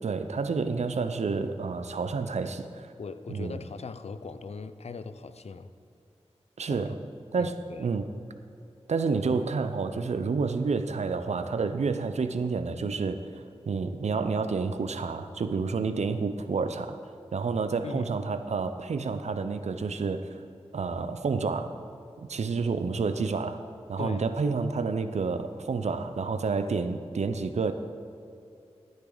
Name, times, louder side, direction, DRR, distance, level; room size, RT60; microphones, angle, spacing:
voice 1, 0.0-2.9 3.3-3.6 6.6-7.0 7.3-8.0 8.9-13.2 13.7-17.0 17.3-20.2 20.7-21.7 22.2-23.6 23.9-27.7, right 4 dB, 80° right, 9 dB, 0.6 m, -29 dB
voice 2, 3.0-5.7 6.7-6.9 7.4-8.0 17.8-18.1 24.0-24.3, left 4 dB, 65° left, 12 dB, 0.6 m, -40 dB
13.5 x 9.1 x 3.9 m, 2.7 s
cardioid pair, 40°, 11 cm